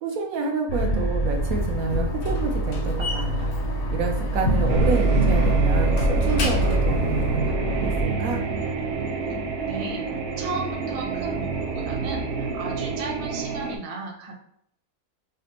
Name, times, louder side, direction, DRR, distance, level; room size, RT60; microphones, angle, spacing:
voice 1, 0.0-3.5 3.9-8.4, right 5 dB, 70° right, 2 dB, 1.0 m, -28 dB
sound 1, 0.7-8.0, right 1 dB, 60° left, 0.9 m, -24 dB
Slam, 1.2-7.4, left 3 dB, 85° left, 1.3 m, -33 dB
sound 2, 4.7-13.8, right 4 dB, 85° right, 0.5 m, -28 dB
voice 2, 9.6-10.0 10.4-14.3, right 3 dB, 40° right, -1 dB, 0.5 m, -35 dB
5.0 x 2.1 x 2.8 m, 0.69 s
omnidirectional pair, 1.7 m